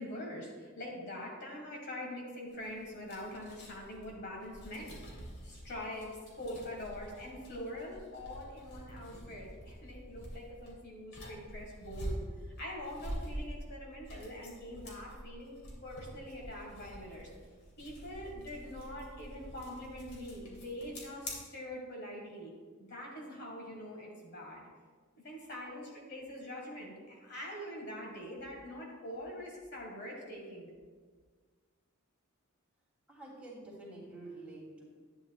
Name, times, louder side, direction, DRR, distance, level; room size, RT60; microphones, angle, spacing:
voice 1, 0.0-6.1 6.4-12.2 12.6-17.3 17.8-22.5 22.8-24.7 25.2-30.7, left 1 dB, 50° left, -1 dB, 1.7 m, -44 dB
sound 1, 2.5-21.3, equal, 75° left, 2.8 m, -47 dB
voice 2, 33.1-34.8, right 2 dB, 5° right, -6 dB, 2.8 m, -48 dB
11.5 x 9.4 x 2.4 m, 1.5 s
head